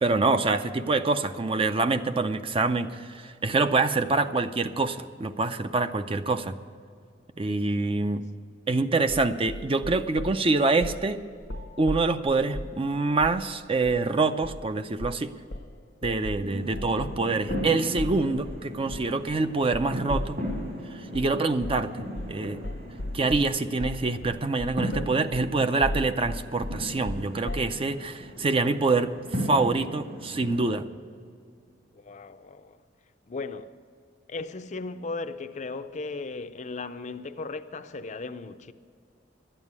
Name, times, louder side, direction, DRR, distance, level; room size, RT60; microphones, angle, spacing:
voice 1, 0.0-6.6 7.4-8.2 8.7-11.2 11.8-15.3 16.0-20.4 20.9-21.9 22.3-22.6 23.1-30.9, right 3 dB, 30° right, 0.5 m, -25 dB
sound 1, 9.1-10.4 10.8-11.1 11.4-12.8 13.2-13.5 13.8-14.0 14.4-14.7 15.0-15.3 15.5-20.7 21.1-21.3 21.6-21.9 22.2-22.4 22.6-27.8, left 1 dB, 70° left, 0.9 m, -36 dB
sound 2, 16.4-30.7, equal, 55° right, 3.1 m, -37 dB
voice 2, 32.0-32.8 33.3-33.7 34.3-38.7, left 3 dB, 40° left, 0.5 m, -36 dB
12.0 x 9.1 x 9.6 m
head